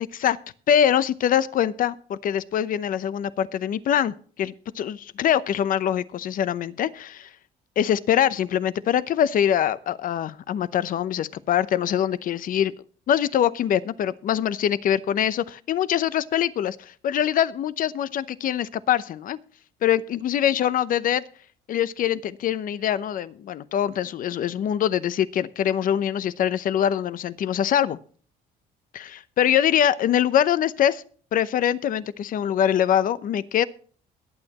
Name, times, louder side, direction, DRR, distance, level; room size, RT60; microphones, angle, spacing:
voice 1, 0.7-7.3 7.8-12.7 13.1-19.4 19.8-21.2 21.7-28.0 28.9-31.0 31.3-33.7, left 10 dB, 55° left, 16 dB, 0.8 m, -23 dB
21.5 x 8.8 x 3.0 m, 0.44 s
cardioid pair, 110°, 17 cm